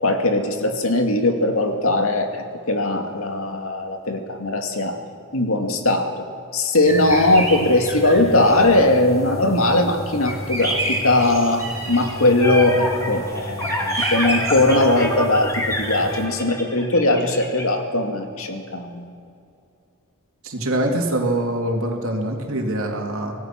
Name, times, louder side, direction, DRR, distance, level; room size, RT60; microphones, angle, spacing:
voice 1, 0.0-5.0 5.3-6.1 6.5-19.0, left 2 dB, 75° left, 4 dB, 2.4 m, -19 dB
sound 1, 6.8-16.2, right 1 dB, 10° right, 7.6 m, -30 dB
sound 2, 11.9-17.6, left 1 dB, 15° left, 3.1 m, -28 dB
voice 2, 20.4-23.3, right 1 dB, 70° right, 1 dB, 3.3 m, -24 dB
26.0 x 18.0 x 6.1 m, 2.5 s
head